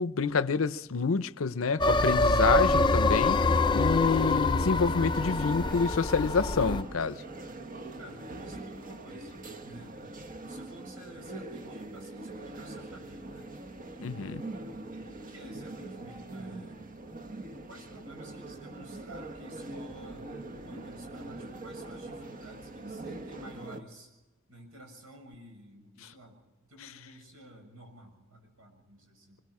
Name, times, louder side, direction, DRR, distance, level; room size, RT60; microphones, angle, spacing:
voice 1, 0.0-3.4 3.7-7.2 14.0-14.4, left 4 dB, 70° left, 0.7 m, -28 dB
sound 1, 1.8-6.8, left 2 dB, 20° left, 0.6 m, -25 dB
sound 2, 4.9-23.8, right 2 dB, 40° right, 1.2 m, -43 dB
voice 2, 8.0-10.0 10.5-13.5 14.0-14.5 15.0-16.8 17.7-20.3 20.6-24.1 24.5-29.4, right 1 dB, 80° right, 6.7 m, -51 dB
25.5 x 22.0 x 4.8 m
head